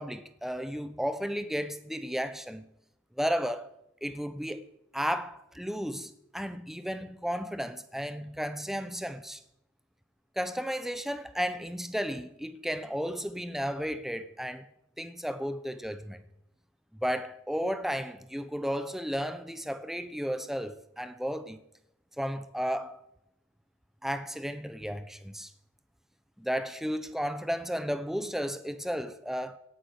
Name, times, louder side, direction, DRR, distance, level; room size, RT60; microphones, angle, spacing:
voice 1, 0.0-2.7 3.2-3.7 4.0-4.7 4.9-9.4 10.4-14.7 15.0-16.2 17.0-21.6 22.2-23.0 24.0-25.5 26.4-29.6, equal, ahead, 0.8 m, -33 dB
17.5 x 9.7 x 6.6 m
head